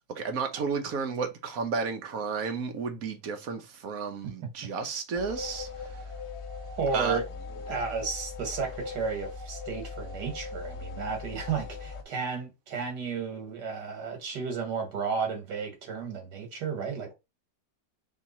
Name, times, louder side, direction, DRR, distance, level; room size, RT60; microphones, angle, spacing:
voice 1, 0.1-6.0 6.9-7.2, right 5 dB, 60° right, 1.2 m, -32 dB
sound 1, 5.1-12.0, left 4 dB, 40° left, 0.4 m, -39 dB
voice 2, 6.8-7.2 7.7-17.2, right 5 dB, 80° right, 2.0 m, -33 dB
3.7 x 2.8 x 4.0 m
omnidirectional pair, 1.8 m